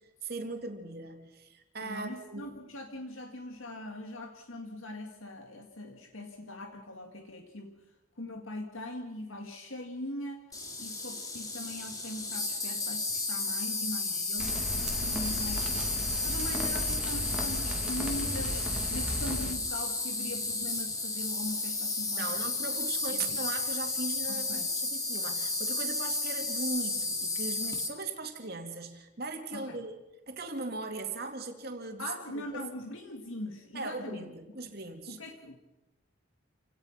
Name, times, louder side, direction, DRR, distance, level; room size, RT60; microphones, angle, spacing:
voice 1, 0.2-2.5 22.2-29.9 30.3-32.7 33.7-35.2, right 3 dB, 50° right, 5 dB, 2.6 m, -39 dB
voice 2, 1.8-7.8 8.2-10.4 10.8-22.5 23.1-23.5 24.3-24.7 29.5-29.8 32.0-34.3 35.1-35.6, left 1 dB, 75° left, 4 dB, 2.1 m, -41 dB
Insect, 10.5-27.9, left 3 dB, 15° left, 2.5 m, -33 dB
sound 1, 14.4-19.5, equal, 5° right, 2.4 m, -36 dB
28.5 x 18.0 x 5.9 m, 1.0 s
head